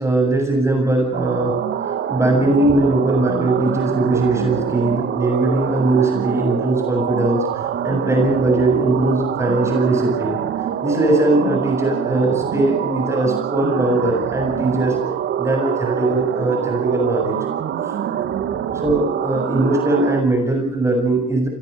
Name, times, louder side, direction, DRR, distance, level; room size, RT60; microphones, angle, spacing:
voice 1, 0.0-1.6 2.1-7.4 7.8-10.4 10.8-15.0 15.4-17.4 18.7-21.5, right 2 dB, 15° right, 3 dB, 7.5 m, -19 dB
sound 1, 1.1-20.2, right 9 dB, 70° right, 2.1 m, -25 dB
26.5 x 19.0 x 6.8 m, 0.65 s
cardioid pair, 90°, 20 cm